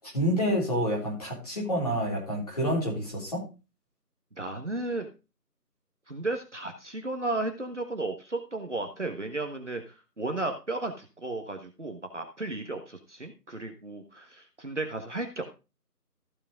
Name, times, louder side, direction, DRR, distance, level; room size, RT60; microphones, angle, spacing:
voice 1, 0.0-3.4, equal, 25° left, -4 dB, 3.8 m, -28 dB
voice 2, 4.4-5.1 6.1-15.4, right 2 dB, 45° right, 5 dB, 1.4 m, -34 dB
14.5 x 5.3 x 5.0 m, 0.31 s
figure-of-eight pair, 170°, 48 cm